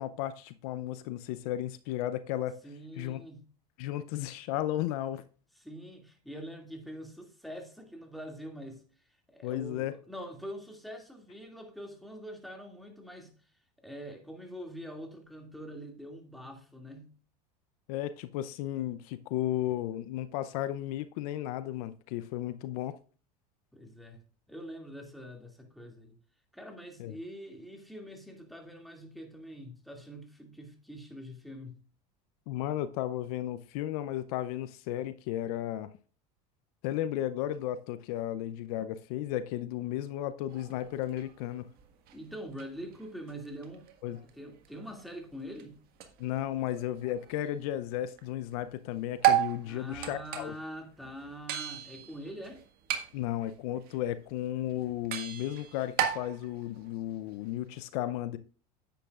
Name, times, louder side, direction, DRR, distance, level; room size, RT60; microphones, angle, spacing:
voice 1, 0.0-2.6 3.0-3.2 3.8-5.2 9.4-10.0 17.9-23.0 27.0-27.1 32.5-35.9 36.8-41.7 44.0-44.2 46.2-50.5 53.1-58.4, left 13 dB, 70° left, 0.6 m, -34 dB
voice 2, 2.6-3.5 5.6-13.3 13.8-17.1 23.7-24.2 24.5-26.2 26.5-31.8 42.1-43.9 44.3-45.8 49.6-52.6, equal, ahead, 2.3 m, -44 dB
sound 1, 40.5-48.3 48.5-57.7, right 11 dB, 50° right, 1.7 m, -36 dB
10.0 x 8.5 x 2.4 m
supercardioid pair, 105°, 20 cm